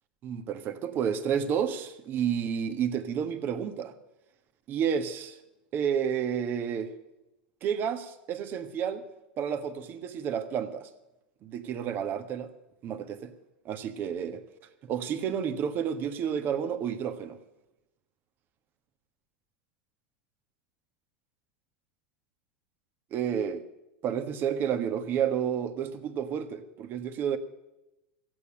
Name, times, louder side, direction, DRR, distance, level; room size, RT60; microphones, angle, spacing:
voice 1, 0.2-3.9 4.7-5.4 5.7-6.9 7.6-9.0 9.4-10.9 11.4-12.5 12.8-13.3 13.6-14.4 14.9-17.4 23.1-23.6 24.0-27.4, right 8 dB, 40° right, 1.5 m, -30 dB
15.5 x 8.5 x 9.8 m
hypercardioid pair, 95°, 5 cm